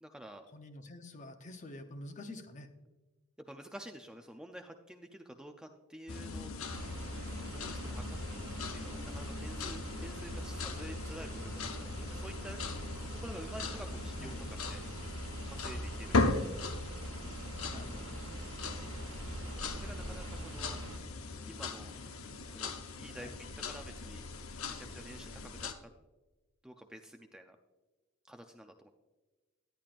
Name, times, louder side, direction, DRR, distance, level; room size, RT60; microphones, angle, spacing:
voice 1, 0.0-0.5 3.4-6.5 7.6-12.8 13.1-14.8 15.5-16.6 19.6-20.8 21.5-21.9 22.5-24.2 24.7-25.9 26.6-27.6 28.3-28.9, right 1 dB, 5° right, 4 dB, 0.4 m, -50 dB
voice 2, 0.5-2.7 14.2-14.5 17.7-18.2 23.2-23.3, left 1 dB, 35° left, 7 dB, 0.7 m, -48 dB
sound 1, 6.1-25.7, left 3 dB, 80° left, 0.7 m, -39 dB
sound 2, 6.7-21.0, right 1 dB, 75° right, 1.0 m, -43 dB
10.5 x 10.0 x 2.5 m, 1.2 s
head